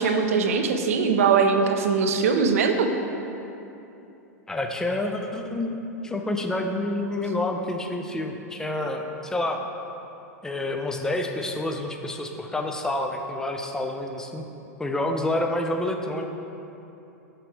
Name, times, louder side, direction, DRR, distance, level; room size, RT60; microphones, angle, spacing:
voice 1, 0.0-2.9, right 5 dB, 55° right, 6 dB, 0.5 m, -21 dB
voice 2, 4.5-5.7 6.0-9.6 10.4-14.4 14.8-16.2, left 1 dB, 5° left, 3 dB, 0.4 m, -28 dB
6.8 x 5.8 x 3.2 m, 2.9 s
figure-of-eight pair, 95°, 9 cm